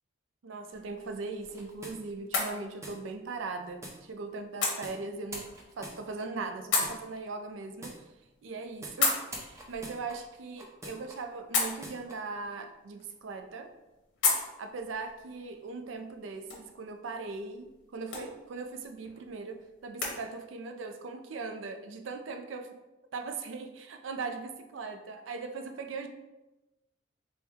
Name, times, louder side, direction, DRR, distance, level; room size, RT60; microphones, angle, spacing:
voice 1, 0.4-5.5 5.8-8.0 8.4-13.7 14.6-22.7 23.1-26.1, right 4 dB, 80° right, 6 dB, 0.4 m, -39 dB
sound 1, 0.7-20.2, left 4 dB, 70° left, 0.9 m, -37 dB
sound 2, 1.4-2.4 2.8-3.0 3.8-4.0 4.8-5.0 5.3-6.4 6.8-7.0 7.8-8.0 8.8-9.0 9.3-11.1 11.6-12.1, right 1 dB, 15° right, 0.5 m, -44 dB
4.3 x 2.2 x 3.5 m, 1.0 s
head